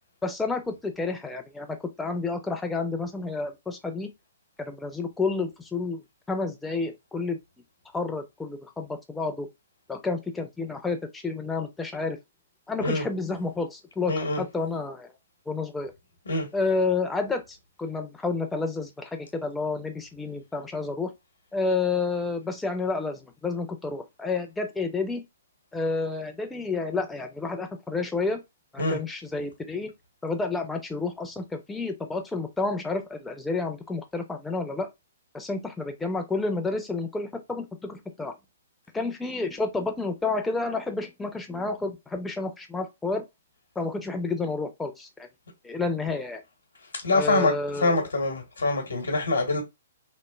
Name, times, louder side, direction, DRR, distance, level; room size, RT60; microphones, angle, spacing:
voice 1, 0.2-4.1 4.6-6.0 6.3-7.4 7.9-9.5 9.9-12.2 12.7-15.1 15.5-15.9 16.5-21.1 21.5-25.2 25.7-28.4 28.7-29.9 30.2-34.9 35.3-38.3 38.9-43.2 43.8-45.3 45.6-46.4 47.1-47.9, left 3 dB, 5° left, 0.4 m, -30 dB
voice 2, 14.1-14.4 16.2-16.5 28.8-29.0 46.8-49.6, left 2 dB, 75° left, 0.9 m, -25 dB
3.0 x 2.0 x 2.2 m
figure-of-eight pair, 120°, 0 cm